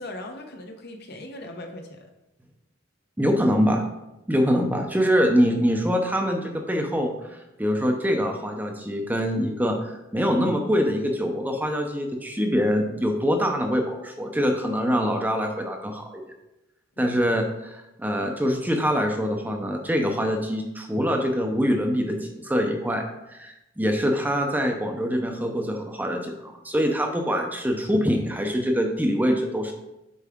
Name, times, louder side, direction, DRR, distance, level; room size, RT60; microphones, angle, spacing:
voice 1, 0.0-2.1, left 1 dB, 55° left, 4 dB, 0.9 m, -39 dB
voice 2, 3.2-3.8 4.3-16.2 17.0-29.7, equal, 10° right, 3 dB, 0.6 m, -24 dB
8.3 x 4.7 x 3.6 m, 0.92 s
head